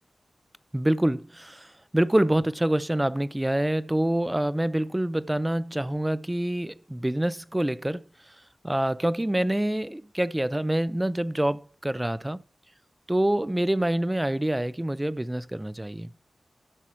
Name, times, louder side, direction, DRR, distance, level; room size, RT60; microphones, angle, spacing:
voice 1, 0.7-1.7 1.9-8.0 8.6-12.4 13.1-16.1, right 1 dB, 15° right, 0.6 m, -26 dB
13.5 x 6.1 x 4.3 m
cardioid pair, 50°, 0 cm